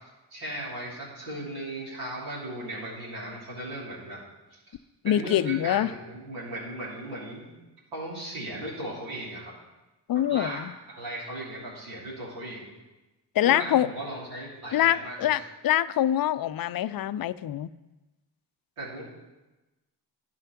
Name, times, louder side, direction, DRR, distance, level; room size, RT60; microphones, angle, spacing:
voice 1, 0.3-4.2 4.5-4.6 5.0-7.5 7.9-9.5 10.3-10.6 10.9-12.7 13.4-15.5 18.8-19.0, right 1 dB, 80° right, -7 dB, 3.3 m, -37 dB
voice 2, 5.0-5.9 10.1-10.7 13.4-13.9 14.7-17.7, left 12 dB, 45° left, 16 dB, 0.5 m, -25 dB
10.0 x 5.7 x 5.9 m, 1.1 s
supercardioid pair, 45°, 49 cm